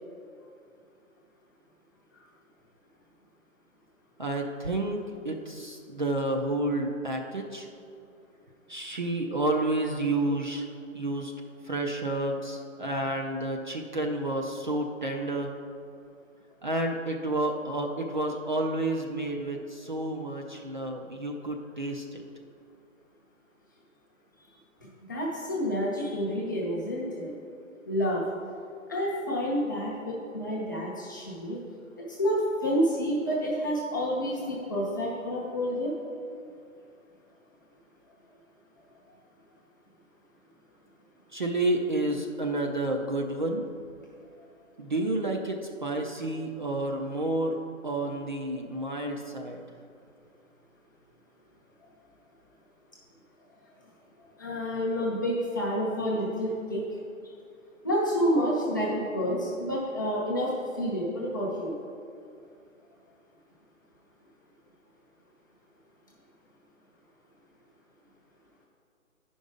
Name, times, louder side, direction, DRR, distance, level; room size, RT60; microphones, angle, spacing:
voice 1, 4.2-7.7 8.7-10.7 10.9-11.3 11.6-15.6 16.6-22.2 41.3-43.6 44.8-47.6 47.8-49.7, right 2 dB, 35° right, 1 dB, 0.5 m, -30 dB
voice 2, 25.1-27.3 27.9-28.2 28.9-31.6 32.0-35.9 54.4-56.9 57.8-61.7, equal, 15° left, -6 dB, 0.7 m, -29 dB
9.5 x 5.3 x 5.0 m, 2.4 s
figure-of-eight pair, 155°, 41 cm